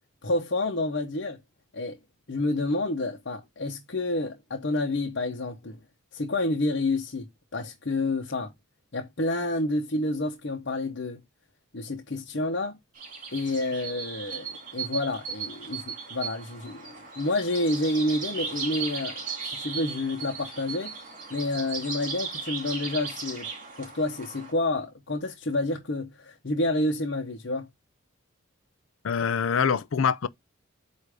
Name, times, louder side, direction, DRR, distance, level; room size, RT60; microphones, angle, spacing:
voice 1, 0.2-1.4 1.7-2.0 2.3-5.8 6.1-8.5 8.9-11.2 11.7-12.8 13.3-20.9 21.3-23.5 23.8-27.7, left 2 dB, 55° left, 0.9 m, -29 dB
sound 1, 13.0-24.5, right 5 dB, 40° right, 2.5 m, -37 dB
voice 2, 29.0-30.3, left 6 dB, 75° left, 0.5 m, -24 dB
8.2 x 2.7 x 4.9 m
head